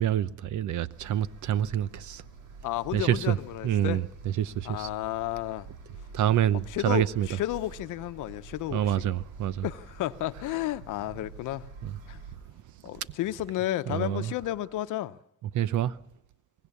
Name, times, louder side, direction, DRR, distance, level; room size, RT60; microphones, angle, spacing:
voice 1, 0.0-2.2 2.9-3.4 3.6-4.9 6.1-7.3 8.7-9.6 11.8-12.0 13.9-14.3 15.5-16.0, right 11 dB, 75° right, 0.9 m, -27 dB
sound 1, 0.9-12.4, right 4 dB, 90° right, 3.5 m, -47 dB
voice 2, 2.6-4.0 4.6-5.7 6.7-9.1 9.6-11.7 12.1-12.2 12.8-15.2, left 14 dB, 90° left, 0.9 m, -32 dB
23.5 x 19.5 x 7.0 m
cardioid pair, 90°, 30 cm